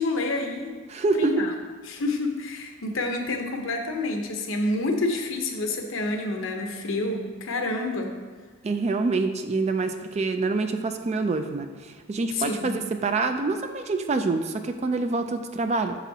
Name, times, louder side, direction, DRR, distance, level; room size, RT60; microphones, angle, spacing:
voice 1, 0.0-0.8 1.1-1.5 1.9-8.1 12.3-12.8, left 2 dB, 80° left, 3 dB, 0.9 m, -28 dB
voice 2, 0.9-1.5 8.6-16.0, right 3 dB, 30° right, 7 dB, 0.3 m, -26 dB
8.0 x 6.2 x 2.8 m, 1.5 s
head